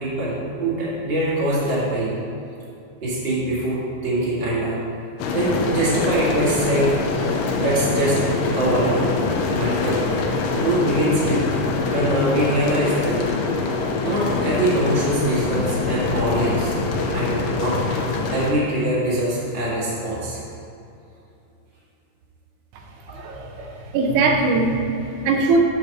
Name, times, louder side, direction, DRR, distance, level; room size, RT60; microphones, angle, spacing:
voice 1, 0.0-2.1 3.0-4.8 5.3-7.0 7.5-8.2 8.5-9.1 9.5-10.0 10.5-11.4 11.9-13.2 14.0-16.7 17.1-17.8 18.3-20.4 23.1-23.2 23.6-23.7, right 1 dB, 25° right, -7 dB, 1.6 m, -23 dB
sound 1, 5.2-18.5, left 3 dB, 75° left, 1.8 m, -24 dB
voice 2, 23.1-23.5 23.9-25.6, right 3 dB, 85° right, 2 dB, 2.3 m, -20 dB
7.6 x 4.1 x 6.5 m, 2.7 s
omnidirectional pair, 3.4 m